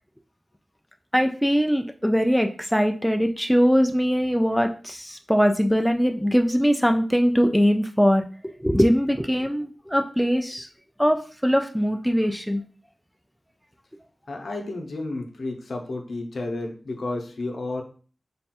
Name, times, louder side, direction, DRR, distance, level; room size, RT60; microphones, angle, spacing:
voice 1, 1.1-8.2 8.6-10.7 11.0-12.6, equal, ahead, 5 dB, 0.4 m, -21 dB
voice 2, 14.3-17.8, left 2 dB, 75° left, 3 dB, 0.7 m, -31 dB
3.4 x 2.2 x 4.2 m, 0.39 s
wide cardioid pair, 65°, 0 cm